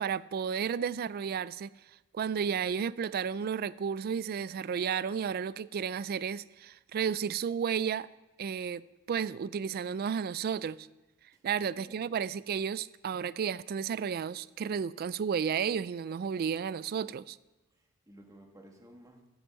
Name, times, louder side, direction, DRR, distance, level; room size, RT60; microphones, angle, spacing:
voice 1, 0.0-1.7 2.1-8.1 8.4-8.8 9.1-10.9 11.4-17.4, right 7 dB, 45° right, 0.3 m, -32 dB
voice 2, 17.7-19.3, right 1 dB, 15° right, 1.6 m, -55 dB
10.0 x 7.1 x 6.3 m
head